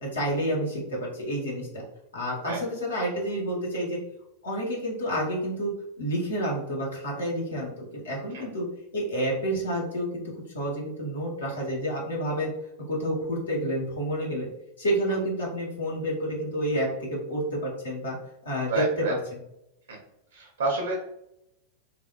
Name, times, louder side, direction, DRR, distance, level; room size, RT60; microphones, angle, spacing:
voice 1, 0.0-1.8 2.1-4.0 4.4-5.7 6.0-8.7 8.9-10.2 10.5-12.5 12.9-14.5 14.8-18.2 18.4-19.4, equal, 70° left, -3 dB, 1.0 m, -29 dB
voice 2, 18.7-19.1 19.9-20.0 20.3-20.9, right 3 dB, 65° right, -1 dB, 0.6 m, -29 dB
3.3 x 2.3 x 2.3 m, 0.82 s
figure-of-eight pair, 90°, 0 cm